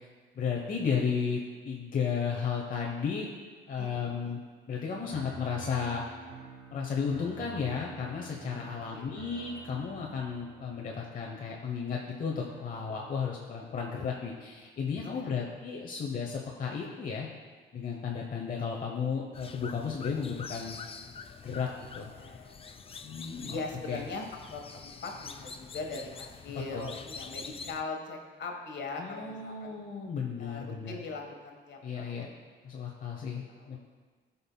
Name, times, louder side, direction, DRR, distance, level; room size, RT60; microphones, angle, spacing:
voice 1, 0.3-3.3 3.7-4.4 4.7-6.0 6.7-17.3 17.7-20.8 21.4-22.1 23.0-23.6 23.9-24.0 26.7-26.9 29.0-31.0 31.8-32.3 32.6-33.8, left 6 dB, 45° left, -1 dB, 0.9 m, -34 dB
voice 2, 3.8-4.3 8.4-8.5 8.9-9.1 9.4-9.5 15.0-15.6 22.1-22.7 23.5-24.2 24.5-29.8 30.4-32.3 33.3-33.8, left 3 dB, 60° left, 2 dB, 1.4 m, -41 dB
sound 1, 4.9-14.0, right 3 dB, 80° right, 2.0 m, -50 dB
sound 2, 19.3-27.8, left 5 dB, 30° left, 0.4 m, -46 dB
15.5 x 5.4 x 2.3 m, 1.5 s
cardioid pair, 90°, 20 cm